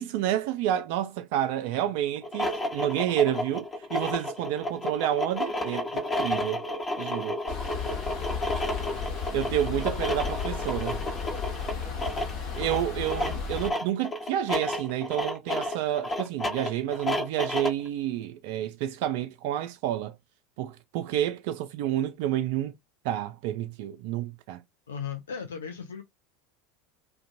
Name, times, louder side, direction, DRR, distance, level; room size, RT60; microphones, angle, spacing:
voice 1, 0.0-6.6 7.0-7.4 9.3-11.0 12.5-20.1 20.6-22.7 23.0-24.6, right 11 dB, 60° right, 0.3 m, -29 dB
sound 1, 2.2-17.9, left 1 dB, 25° left, 1.0 m, -31 dB
sound 2, 7.5-13.7, left 6 dB, 50° left, 1.1 m, -34 dB
voice 2, 24.9-26.0, left 7 dB, 75° left, 0.4 m, -36 dB
2.5 x 2.2 x 2.5 m
figure-of-eight pair, 80°, 0 cm